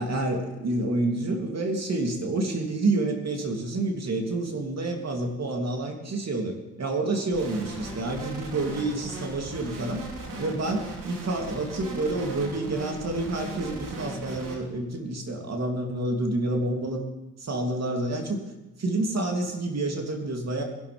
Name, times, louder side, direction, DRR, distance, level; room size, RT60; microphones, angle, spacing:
voice 1, 0.0-10.0 10.4-17.1 17.4-18.4 18.8-20.6, right 2 dB, 50° right, 2 dB, 3.1 m, -28 dB
sound 1, 7.3-14.6, right 1 dB, 70° right, 3.3 m, -38 dB
21.0 x 11.5 x 3.6 m, 1.0 s
hypercardioid pair, 50°, 34 cm